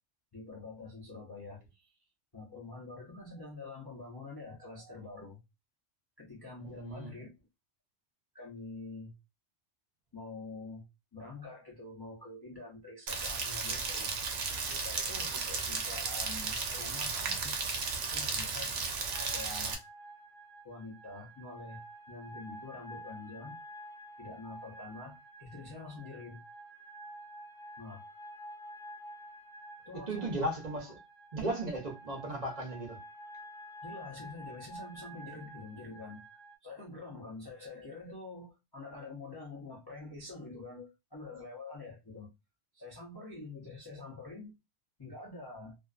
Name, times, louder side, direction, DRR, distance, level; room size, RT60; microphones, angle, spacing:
voice 1, 0.3-1.9 2.3-5.4 6.2-7.3 8.3-9.1 10.1-10.8 11.1-14.1 14.5-17.6 18.0-18.7 19.2-19.8 20.6-21.8 22.1-23.6 24.2-26.4 27.8-28.0 29.8-30.4 33.8-42.3 42.7-44.6 45.0-45.8, left 3 dB, 30° left, 0.5 m, -46 dB
voice 2, 6.6-7.1 30.1-31.0 31.3-33.0, right 1 dB, 45° right, 0.7 m, -36 dB
Rain, 13.1-19.7, right 4 dB, 70° right, 0.8 m, -34 dB
sound 1, 19.0-36.6, right 1 dB, 50° left, 0.9 m, -49 dB
2.4 x 2.3 x 2.3 m
omnidirectional pair, 1.2 m